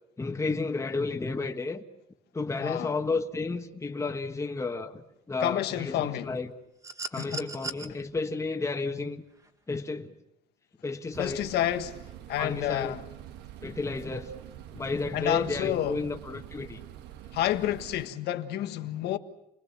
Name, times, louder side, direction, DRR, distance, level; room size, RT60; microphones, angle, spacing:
voice 1, 0.2-1.8 2.3-6.5 7.1-9.2 9.7-10.1 10.8-11.4 12.4-12.9 13.6-14.3 14.7-16.8, left 3 dB, 15° left, 1.5 m, -32 dB
voice 2, 2.6-2.9 5.4-6.3 7.2-7.5 7.9-8.0 11.2-12.0 12.3-13.0 15.1-16.0 17.3-19.2, left 12 dB, 75° left, 1.5 m, -29 dB
sound 1, 6.8-7.9 9.4-9.5, right 3 dB, 20° right, 1.8 m, -37 dB
sound 2, 11.1-18.1, right 11 dB, 90° right, 1.4 m, -46 dB
28.5 x 19.5 x 7.4 m
cardioid pair, 110°, 17 cm